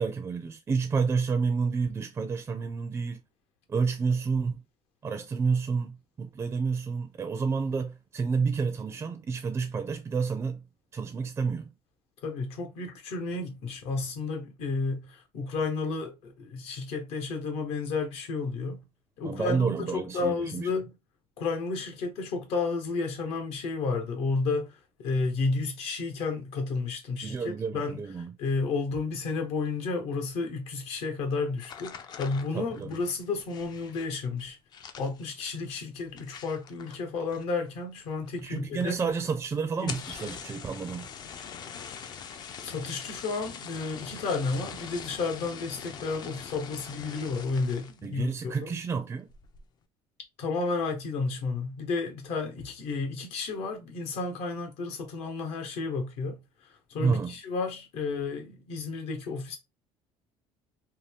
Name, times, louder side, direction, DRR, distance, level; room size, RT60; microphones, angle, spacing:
voice 1, 0.0-3.2 3.7-4.6 5.0-10.6 10.9-11.7 19.2-20.7 27.2-28.3 32.5-32.9 38.4-41.1 48.0-49.3 57.0-57.3, right 5 dB, 25° right, 0.4 m, -29 dB
voice 2, 12.2-18.8 19.2-20.9 21.4-28.0 28.4-34.6 35.0-38.9 39.8-40.2 42.6-48.7 50.4-56.4 56.9-59.6, left 4 dB, 65° left, 1.0 m, -32 dB
sound 1, 31.6-37.7 38.0-38.5 38.8-38.9 39.2-39.3 39.7-48.1 48.5-48.9 49.3-49.7, left 7 dB, 40° left, 0.4 m, -43 dB
2.7 x 2.3 x 3.3 m
cardioid pair, 130°, 11 cm